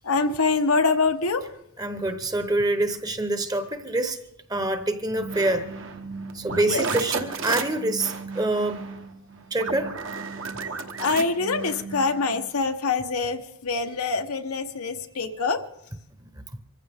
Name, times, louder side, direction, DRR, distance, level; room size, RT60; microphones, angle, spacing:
voice 1, 0.0-1.5 6.7-6.9 11.0-15.6, left 4 dB, 85° left, 1.1 m, -25 dB
voice 2, 1.8-4.2 4.5-5.6 6.3-8.8 9.5-9.9, right 2 dB, 15° right, 0.9 m, -25 dB
sound 1, 5.1-12.4, right 4 dB, 60° right, 1.2 m, -34 dB
25.0 x 15.0 x 3.6 m
head